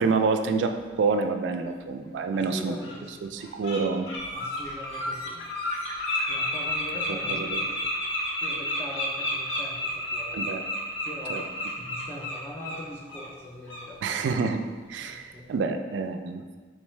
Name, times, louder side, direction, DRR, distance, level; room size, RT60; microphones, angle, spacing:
voice 1, 0.0-2.7 3.2-4.1 7.1-7.6 10.3-10.6 11.3-11.4 14.0-14.6 14.9-16.4, right 4 dB, 70° right, 7 dB, 0.3 m, -27 dB
Bird, 2.0-2.1 2.8-3.0 3.4-3.8 4.1-12.8 13.1-13.3 13.7-13.9, left 1 dB, 85° left, 0.8 m, -31 dB
voice 2, 2.3-3.6 4.3-5.5 6.3-7.9 8.4-10.4 11.0-14.3 15.0-15.5, left 1 dB, 10° left, -4 dB, 0.4 m, -42 dB
3.6 x 3.5 x 3.1 m, 1.4 s
head